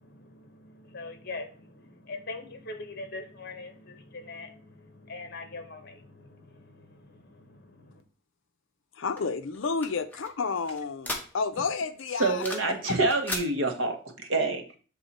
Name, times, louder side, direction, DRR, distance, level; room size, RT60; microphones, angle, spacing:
voice 1, 0.0-8.0, left 3 dB, 45° left, 6 dB, 1.1 m, -43 dB
voice 2, 9.0-12.5 12.8-13.0, left 4 dB, 60° left, 9 dB, 0.5 m, -31 dB
sound 1, 9.2-11.7 12.0-12.8 13.0-13.5, left 2 dB, 10° left, 0.9 m, -37 dB
voice 3, 12.2-14.0 14.3-14.6, right 3 dB, 65° right, 5 dB, 1.1 m, -26 dB
7.0 x 3.6 x 4.1 m, 0.38 s
head